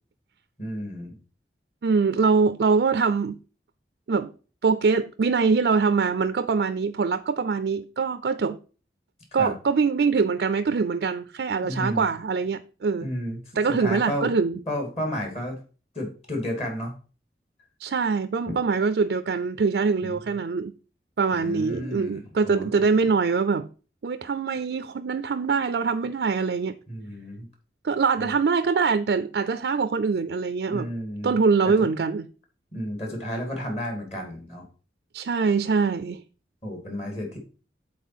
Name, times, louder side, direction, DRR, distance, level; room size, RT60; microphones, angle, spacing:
voice 1, 0.6-1.2 9.4-9.5 11.6-12.1 13.0-13.4 13.7-14.3 14.7-15.6 15.9-16.9 20.0-20.2 21.3-22.7 26.9-27.5 28.2-28.3 30.7-31.3 31.6-31.9 32.7-34.6 36.6-37.4, equal, 35° left, 2.4 m, -32 dB
voice 2, 1.8-3.3 4.1-4.3 4.6-8.6 9.3-13.1 13.6-14.6 17.8-20.7 21.2-23.7 24.0-26.8 27.8-30.9 31.2-32.3 35.1-36.2, right 5 dB, 70° right, 0.4 m, -23 dB
7.3 x 4.2 x 5.9 m
head